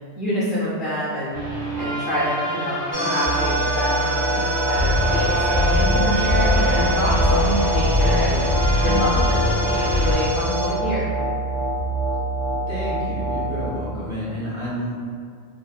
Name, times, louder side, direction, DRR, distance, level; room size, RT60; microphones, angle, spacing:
voice 1, 0.2-1.4 1.8-11.1, equal, 50° left, -9 dB, 0.7 m, -27 dB
sound 1, 1.3-10.1, left 1 dB, 50° right, 1.4 m, -22 dB
sound 2, 2.9-13.7, right 2 dB, 80° right, 1.0 m, -24 dB
voice 2, 12.7-14.9, equal, 30° right, -10 dB, 0.8 m, -30 dB
2.8 x 2.5 x 2.3 m, 2.1 s
omnidirectional pair, 1.2 m